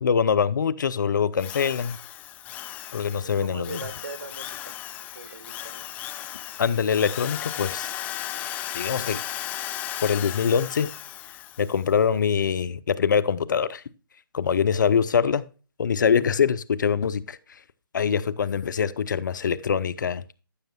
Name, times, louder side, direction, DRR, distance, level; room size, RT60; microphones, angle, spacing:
voice 1, 0.0-2.0 2.9-3.8 6.6-7.9 8.7-9.2 10.0-10.9 11.6-13.8 14.3-15.4 15.8-17.4 17.9-20.2, left 7 dB, 60° left, 0.7 m, -24 dB
Drill, 1.4-11.8, left 13 dB, 15° left, 0.4 m, -36 dB
voice 2, 2.9-5.9, right 3 dB, 60° right, 1.5 m, -41 dB
15.0 x 6.6 x 2.2 m
figure-of-eight pair, 135°, 12 cm